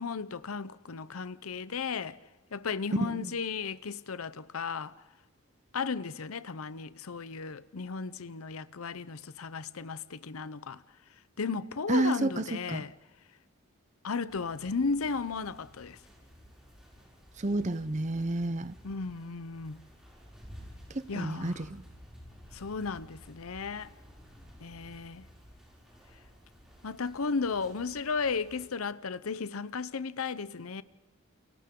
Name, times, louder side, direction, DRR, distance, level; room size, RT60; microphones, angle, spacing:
voice 1, 0.0-2.2 2.5-4.9 5.7-10.8 11.4-12.9 14.0-16.0 18.8-19.8 21.1-21.7 22.5-23.9 24.6-25.3 26.8-30.8, left 5 dB, 90° left, 0.8 m, -35 dB
voice 2, 11.9-12.8 17.4-18.7 20.9-21.8, right 2 dB, 35° right, 0.7 m, -30 dB
sound 1, 14.3-28.7, equal, ahead, 6.3 m, -54 dB
30.0 x 28.5 x 3.8 m
head